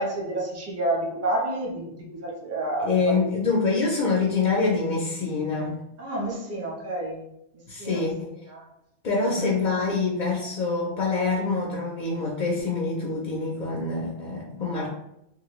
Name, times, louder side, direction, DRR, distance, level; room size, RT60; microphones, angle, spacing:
voice 1, 0.0-3.2 6.0-7.2 7.8-8.0 8.5-8.6 9.3-9.5, right 1 dB, 20° right, -2 dB, 0.4 m, -29 dB
voice 2, 2.8-5.8 7.7-8.3 9.0-14.9, left 4 dB, 55° left, -2 dB, 0.5 m, -25 dB
3.1 x 2.5 x 3.0 m, 0.82 s
omnidirectional pair, 1.3 m